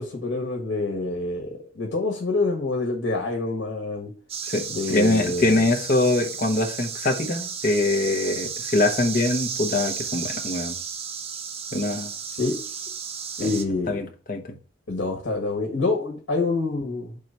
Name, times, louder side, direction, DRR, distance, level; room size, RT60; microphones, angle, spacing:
voice 1, 0.0-4.1 4.7-5.6 12.4-12.6 13.4-14.0 14.9-17.2, left 3 dB, 85° left, 1.4 m, -27 dB
sound 1, 4.3-13.6, right 6 dB, 35° right, 0.6 m, -33 dB
voice 2, 4.5-10.8 11.7-12.1 13.4-13.5 13.9-14.4, left 2 dB, 50° left, 1.1 m, -23 dB
4.7 x 3.8 x 5.6 m
head